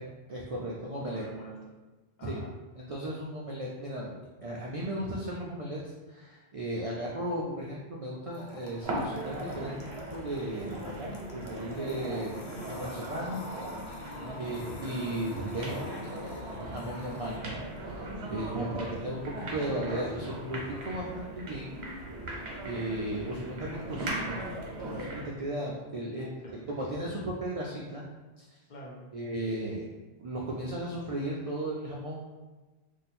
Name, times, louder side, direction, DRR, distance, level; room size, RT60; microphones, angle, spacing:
voice 1, 0.3-1.2 2.2-2.4 2.8-12.4 12.7-13.4 14.4-15.8 16.1-17.6 17.9-18.0 18.3-21.7 22.6-24.4 24.9-26.3 26.7-28.0 28.4-28.5 29.1-29.8 30.2-32.3, right 1 dB, 60° right, -4 dB, 0.3 m, -35 dB
voice 2, 0.9-1.8 2.2-2.5 14.1-14.5 18.5-18.8 26.1-26.7 28.7-29.1, equal, 55° left, -3 dB, 0.6 m, -45 dB
sound 1, 8.3-17.4, left 2 dB, 90° left, 0.9 m, -49 dB
sound 2, 8.8-25.3, right 1 dB, 85° right, 1.0 m, -39 dB
2.7 x 2.2 x 4.1 m, 1.2 s
omnidirectional pair, 1.1 m